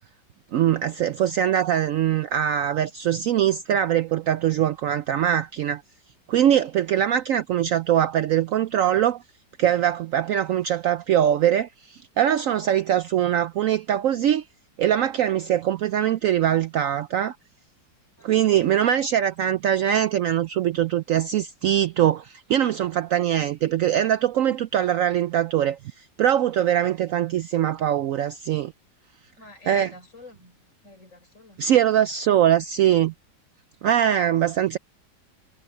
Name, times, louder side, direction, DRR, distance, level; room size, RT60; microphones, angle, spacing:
voice 1, 0.5-5.8 6.3-9.2 9.6-14.5 14.8-17.3 18.2-28.7 29.7-29.9 31.6-33.1 33.8-34.8, right 10 dB, 85° right, 0.7 m, -22 dB
voice 2, 18.2-18.7 29.4-31.6, left 2 dB, 40° left, 5.5 m, -49 dB
omnidirectional pair, 2.0 m